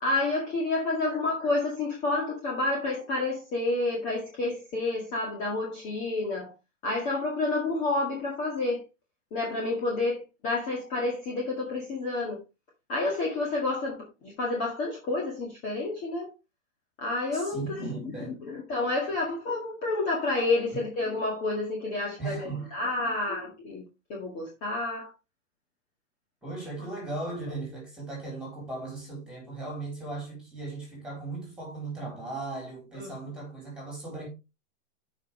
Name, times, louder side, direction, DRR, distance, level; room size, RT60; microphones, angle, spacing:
voice 1, 0.0-6.5 6.8-8.8 9.3-12.4 12.9-16.3 17.0-23.8 24.1-25.1 32.9-33.1, left 2 dB, 20° left, 2.0 m, -29 dB
voice 2, 17.3-18.3 20.7-20.8 22.2-22.8 26.4-34.3, right 3 dB, ahead, 4.2 m, -37 dB
13.0 x 5.6 x 3.2 m
hypercardioid pair, 165°, 39 cm